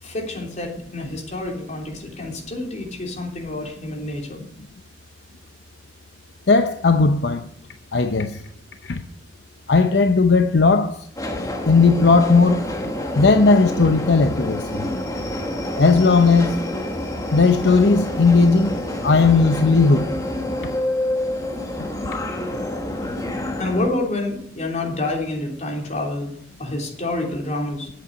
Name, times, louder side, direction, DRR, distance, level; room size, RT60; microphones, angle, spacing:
voice 1, 0.0-4.4 23.6-26.3 26.6-27.9, left 2 dB, 40° left, 3.2 m, -28 dB
voice 2, 6.5-7.5 7.9-8.4 8.8-9.0 9.7-11.1 11.6-12.9 13.1-14.9 15.8-16.6 17.3-18.8 19.0-20.1, left 4 dB, 70° left, 0.7 m, -16 dB
Subway metro underground, 11.2-23.9, left 1 dB, 20° left, 1.5 m, -28 dB
9.4 x 8.2 x 9.5 m
head